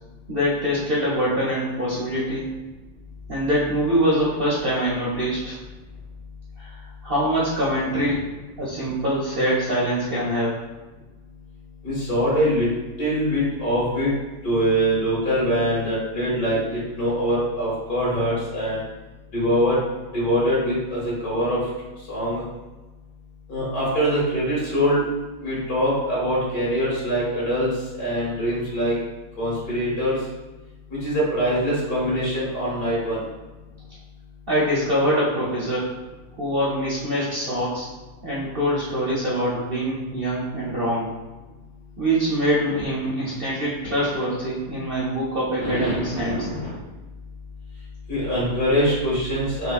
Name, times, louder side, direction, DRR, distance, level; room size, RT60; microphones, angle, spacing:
voice 1, 0.3-2.5 3.3-5.6 6.6-8.2 8.6-10.6 34.5-35.9 36.4-37.9 38.2-41.1 42.0-46.5, equal, 55° right, -7 dB, 0.6 m, -24 dB
voice 2, 11.8-12.7 13.0-14.1 14.4-18.8 19.3-19.8 20.1-21.6 22.1-22.4 23.5-25.0 25.4-29.0 29.4-30.2 31.0-33.2 45.5-46.7 48.1-49.7, equal, 65° left, -8 dB, 2.1 m, -23 dB
5.6 x 2.0 x 2.4 m, 1.2 s
omnidirectional pair, 1.7 m